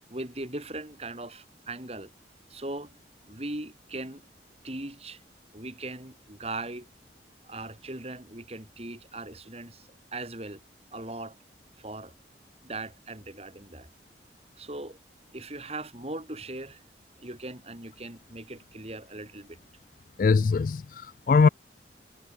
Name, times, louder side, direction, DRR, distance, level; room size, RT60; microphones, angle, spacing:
voice 1, 0.1-2.1 2.5-3.0 3.2-4.2 4.6-5.2 5.5-6.9 7.4-10.6 10.9-11.4 11.8-12.1 12.6-13.9 14.6-15.0 15.3-16.8 17.2-19.6, right 2 dB, 35° right, 3.5 m, -39 dB
voice 2, 20.2-21.5, left 4 dB, 50° left, 0.3 m, -22 dB
head